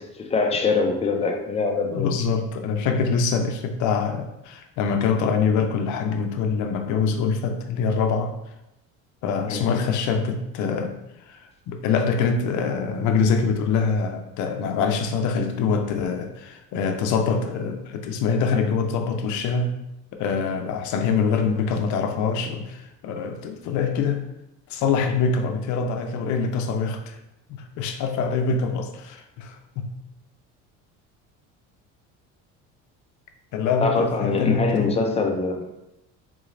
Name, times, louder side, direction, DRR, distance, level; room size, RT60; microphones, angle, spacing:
voice 1, 0.2-2.1 9.5-9.7 33.8-35.6, left 4 dB, 20° left, 3 dB, 0.5 m, -23 dB
voice 2, 1.8-8.3 9.2-19.8 20.2-24.2 24.7-27.2 27.5-30.0 33.5-34.9, left 5 dB, 65° left, 5 dB, 0.6 m, -24 dB
3.8 x 3.0 x 2.5 m, 0.89 s
cardioid pair, 115°, 32 cm